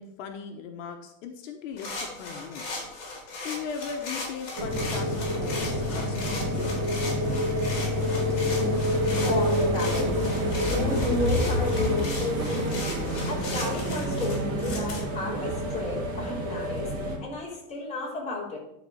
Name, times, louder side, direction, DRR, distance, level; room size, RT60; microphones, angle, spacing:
voice 1, 0.0-2.6 3.4-7.5, left 6 dB, 80° left, 4 dB, 1.3 m, -39 dB
sound 1, 1.8-15.0, left 3 dB, 40° left, 4.1 m, -38 dB
sound 2, 4.6-17.2, equal, 40° right, 2.1 m, -27 dB
voice 2, 9.1-13.0 13.3-18.6, left 2 dB, 20° left, -6 dB, 3.6 m, -33 dB
11.5 x 4.4 x 6.5 m, 0.88 s
supercardioid pair, 165°, 37 cm